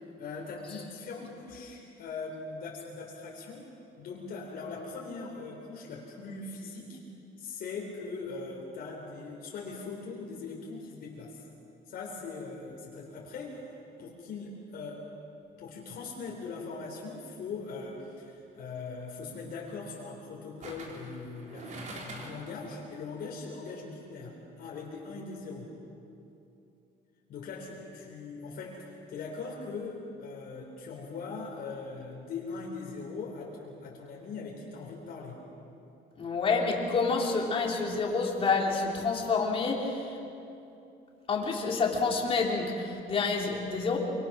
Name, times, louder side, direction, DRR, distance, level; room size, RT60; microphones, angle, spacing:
voice 1, 0.2-3.7 4.0-7.0 7.4-11.4 11.9-13.7 14.0-15.1 15.6-25.7 27.3-35.4, left 4 dB, 55° left, -2 dB, 4.0 m, -41 dB
sound 1, 18.0-18.3 20.6-22.6 22.9-23.0, right 2 dB, 45° right, 3.6 m, -44 dB
voice 2, 36.2-40.2 41.3-44.0, left 4 dB, 30° left, -1 dB, 3.2 m, -28 dB
26.5 x 25.5 x 6.1 m, 2.8 s
cardioid pair, 175°, 18 cm